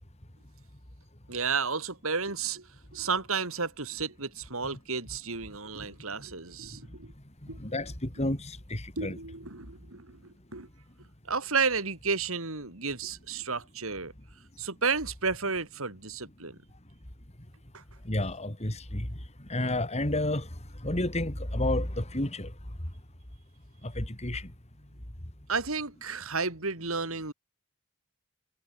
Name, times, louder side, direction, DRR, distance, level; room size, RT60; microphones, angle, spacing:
voice 1, 1.3-7.1 7.5-7.6 9.0-10.7 11.3-14.1 14.6-16.6 17.7-17.8 25.5-27.3, right 5 dB, 65° right, 3.3 m, -32 dB
voice 2, 7.6-7.9 8.2-9.2 18.1-19.1 19.5-20.5 20.8-22.5 24.0-24.4, left 1 dB, 30° left, 3.1 m, -30 dB
head